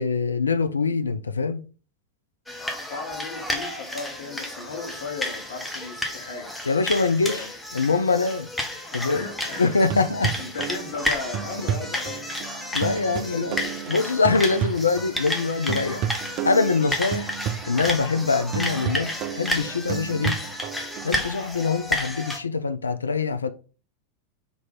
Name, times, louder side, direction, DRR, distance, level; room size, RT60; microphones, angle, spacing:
voice 1, 0.0-1.6 6.7-7.5 7.7-8.5 8.9-9.2 9.6-10.3 12.7-17.3 17.7-20.4 21.0-23.5, left 4 dB, 75° left, 0.3 m, -24 dB
sound 1, 2.5-22.4, left 1 dB, 5° left, 0.8 m, -32 dB
voice 2, 2.9-6.6 7.1-7.5 9.1-12.3 13.1-13.7, left 4 dB, 55° left, 1.2 m, -36 dB
sound 2, 9.2-15.4 15.7-21.1, right 9 dB, 40° right, 0.4 m, -32 dB
3.7 x 3.1 x 3.9 m
figure-of-eight pair, 90°, 0 cm